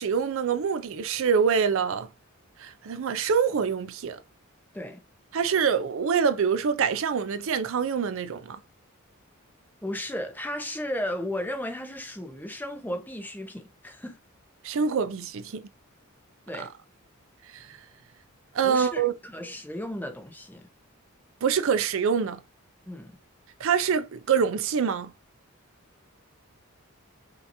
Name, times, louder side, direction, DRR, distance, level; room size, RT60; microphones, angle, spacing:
voice 1, 0.0-2.1 2.6-4.2 5.3-8.6 14.6-15.7 16.6-16.7 17.5-17.8 18.5-19.1 21.4-22.4 23.6-25.1, right 6 dB, 65° right, 0.5 m, -25 dB
voice 2, 9.8-14.2 16.5-16.7 18.6-20.7 22.9-23.2, left 1 dB, 10° left, 0.8 m, -35 dB
5.7 x 2.9 x 2.6 m
head